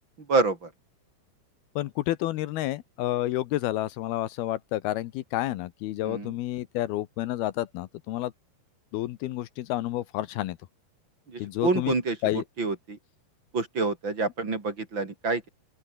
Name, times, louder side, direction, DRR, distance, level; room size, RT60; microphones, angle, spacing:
voice 1, 0.3-0.7 6.0-6.3 11.3-13.0 13.5-15.5, right 3 dB, 30° right, 3.7 m, -27 dB
voice 2, 1.8-8.3 8.9-10.6 11.4-11.9 12.2-12.4, left 15 dB, 75° left, 2.7 m, -30 dB
open air
omnidirectional pair, 4.8 m